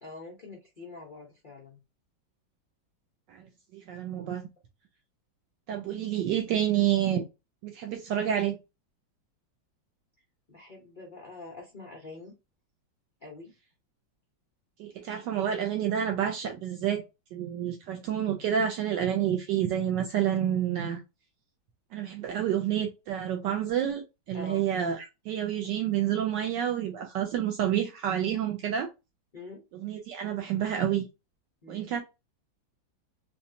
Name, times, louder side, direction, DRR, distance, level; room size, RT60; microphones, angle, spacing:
voice 1, 0.0-1.8 10.5-12.3 13.2-13.5 24.3-24.6 29.3-29.6 31.6-31.9, left 3 dB, 55° left, 0.5 m, -45 dB
voice 2, 3.7-4.4 5.7-7.2 7.6-8.6 14.8-17.0 17.3-21.0 21.9-28.9 29.8-31.0 31.7-32.0, right 10 dB, 75° right, 1.1 m, -29 dB
4.1 x 2.3 x 2.7 m
omnidirectional pair, 2.1 m